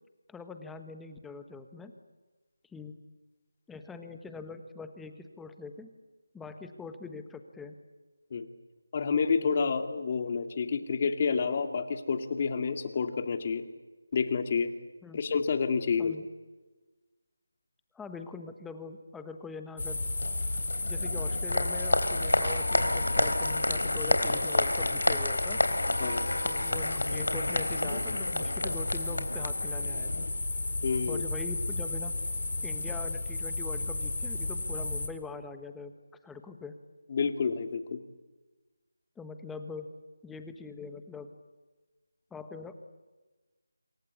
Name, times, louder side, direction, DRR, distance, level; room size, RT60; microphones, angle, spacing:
voice 1, 0.3-1.9 2.7-3.0 3.7-5.9 6.3-7.7 15.0-15.2 16.0-16.2 17.9-20.0 20.8-25.6 26.4-30.3 31.1-32.1 32.6-35.9 36.2-36.7 39.2-39.9 40.2-41.3 42.3-42.7, left 4 dB, 5° left, 8 dB, 1.2 m, -43 dB
voice 2, 8.9-13.6 14.1-14.7 15.1-16.2 26.0-26.2 30.8-31.3 37.1-38.0, left 5 dB, 35° left, 8 dB, 2.3 m, -29 dB
sound 1, 19.8-35.1, left 2 dB, 65° left, 4.6 m, -33 dB
Applause, 20.2-30.3, left 1 dB, 85° left, 3.8 m, -30 dB
27.0 x 23.5 x 8.3 m, 1.2 s
figure-of-eight pair, 165°, 0 cm